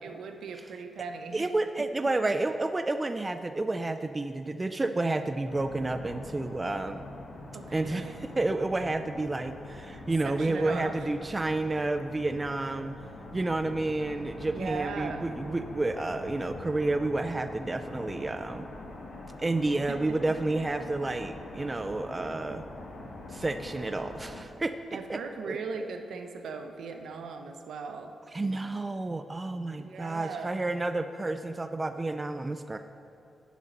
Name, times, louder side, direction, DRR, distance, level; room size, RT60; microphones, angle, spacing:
voice 1, 0.0-1.5 7.5-8.2 10.2-10.9 14.5-15.3 19.9-20.2 24.9-28.1 29.8-30.6, right 5 dB, 80° right, 6 dB, 0.8 m, -38 dB
voice 2, 1.3-7.0 7.7-12.9 13.3-18.7 19.4-22.7 23.3-25.2 25.5-25.9 28.3-32.8, right 2 dB, 20° right, 8 dB, 0.3 m, -30 dB
sound 1, 5.4-24.4, left 2 dB, 65° left, 1.5 m, -44 dB
10.0 x 7.3 x 5.3 m, 2.7 s
wide cardioid pair, 135°, 0 cm